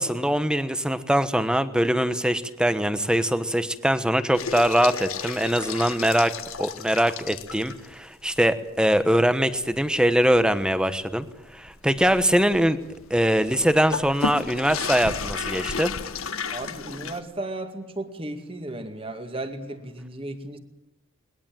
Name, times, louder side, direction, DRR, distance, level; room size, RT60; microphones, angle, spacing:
voice 1, 0.0-6.3 6.6-11.3 11.5-12.8 13.1-15.9, equal, 5° right, 12 dB, 1.1 m, -22 dB
Content warning, 4.3-7.9 8.4-8.5 8.9-9.0 9.5-17.2, left 5 dB, 80° left, 1.5 m, -33 dB
voice 2, 16.5-20.6, right 2 dB, 25° right, 7 dB, 2.2 m, -35 dB
21.5 x 20.5 x 9.0 m, 0.91 s
head